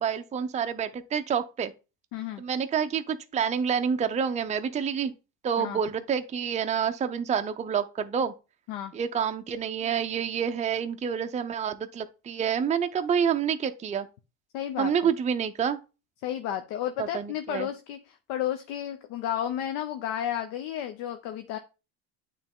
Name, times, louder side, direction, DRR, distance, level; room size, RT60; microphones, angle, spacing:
voice 1, 0.0-1.7 2.4-5.1 5.4-8.3 8.9-14.1 14.8-15.8 17.0-17.7, right 7 dB, 20° right, 0.5 m, -28 dB
voice 2, 2.1-2.4 5.6-5.8 8.7-8.9 14.5-15.1 16.2-21.6, left 11 dB, 65° left, 0.8 m, -32 dB
8.8 x 3.3 x 3.6 m
hypercardioid pair, 80°, 39 cm